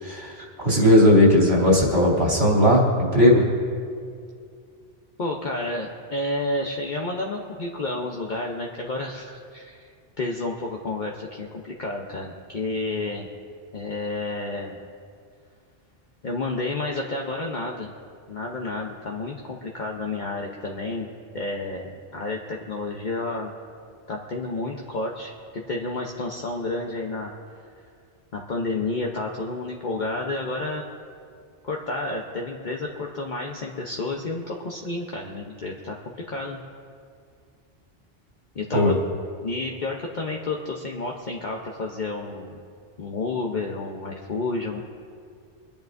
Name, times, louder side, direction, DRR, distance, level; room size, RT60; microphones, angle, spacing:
voice 1, 0.0-3.4 38.7-38.9, left 1 dB, 70° right, -4 dB, 3.2 m, -17 dB
voice 2, 5.2-9.9 10.2-13.3 13.7-14.8 16.2-17.9 18.3-21.1 21.3-23.5 24.1-27.3 28.3-30.8 31.6-36.0 36.3-36.6 38.5-38.9 39.4-42.6 43.0-44.8, left 2 dB, 50° left, 0 dB, 0.9 m, -30 dB
28.5 x 10.5 x 2.6 m, 2.2 s
omnidirectional pair, 1.1 m